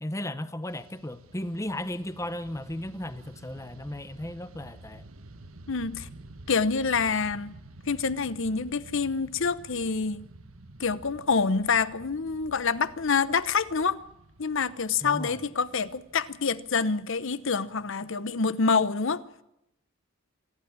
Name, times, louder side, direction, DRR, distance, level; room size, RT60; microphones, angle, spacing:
voice 1, 0.0-5.1 15.0-15.4, left 1 dB, 15° left, 0.8 m, -35 dB
Fixed-wing aircraft airplane, 0.6-18.1, right 2 dB, 75° right, 1.4 m, -50 dB
voice 2, 5.7-6.1 6.5-7.5 7.9-10.3 10.8-14.0 14.4-19.2, left 5 dB, 60° left, 0.9 m, -27 dB
26.5 x 11.5 x 9.5 m
head